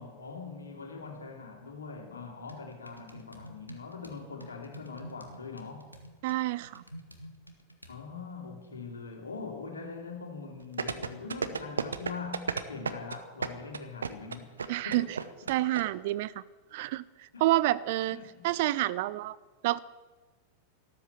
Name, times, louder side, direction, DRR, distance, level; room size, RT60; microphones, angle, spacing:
voice 1, 0.0-5.9 7.9-14.6 14.8-15.2 17.3-17.4 18.0-18.5, left 4 dB, 75° left, 3 dB, 2.6 m, -42 dB
sound 1, 2.5-8.0, right 1 dB, 90° right, 1.5 m, -50 dB
voice 2, 6.2-6.8 14.7-15.2 15.5-16.4 16.7-18.2 18.4-19.4 19.6-19.8, right 17 dB, 50° right, 19 dB, 0.5 m, -28 dB
sound 2, 10.8-15.8 16.1-16.2, right 5 dB, 70° right, 0.9 m, -32 dB
13.5 x 13.0 x 7.1 m, 1.3 s
figure-of-eight pair, 90°, 0 cm